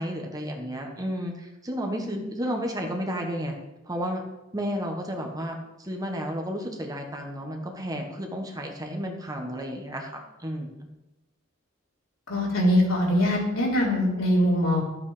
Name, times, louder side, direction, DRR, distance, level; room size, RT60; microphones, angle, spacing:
voice 1, 0.0-3.6 3.8-4.2 4.5-10.7, equal, 15° right, 2 dB, 1.4 m, -32 dB
voice 2, 12.3-14.8, equal, 70° left, -4 dB, 3.8 m, -22 dB
12.5 x 8.6 x 5.1 m, 1.0 s
head